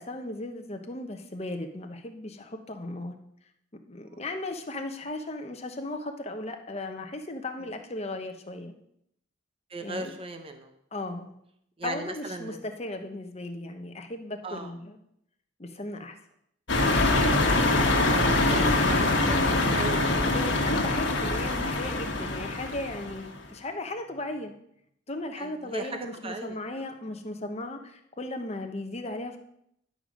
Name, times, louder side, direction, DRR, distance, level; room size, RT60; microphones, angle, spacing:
voice 1, 0.0-3.1 3.8-8.7 9.8-10.1 10.9-11.3 11.8-15.0 15.6-16.2 16.8-17.4 20.2-24.5 25.1-29.4, left 2 dB, 30° left, 5 dB, 1.0 m, -36 dB
voice 2, 9.7-10.7 11.8-12.6 14.4-14.7 17.6-20.4 25.4-26.8, right 2 dB, 30° right, 5 dB, 0.8 m, -38 dB
sound 1, 16.7-23.3, left 2 dB, 60° left, 1.6 m, -24 dB
11.0 x 5.2 x 6.3 m, 0.74 s
head